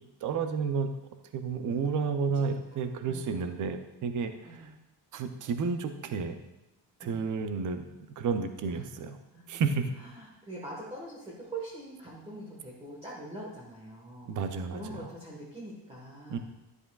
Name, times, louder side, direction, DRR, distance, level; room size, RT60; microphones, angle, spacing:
voice 1, 0.2-0.9 1.3-4.7 5.1-6.4 7.0-7.8 8.2-9.2 9.5-9.9 14.3-14.8 16.3-16.4, right 5 dB, 45° right, 8 dB, 0.6 m, -31 dB
voice 2, 3.1-3.5 4.4-4.7 7.0-7.2 8.7-8.8 9.3-14.3 14.7-16.4, right 1 dB, 15° right, -5 dB, 1.3 m, -43 dB
11.0 x 8.0 x 2.3 m, 0.93 s
cardioid pair, 160°, 44 cm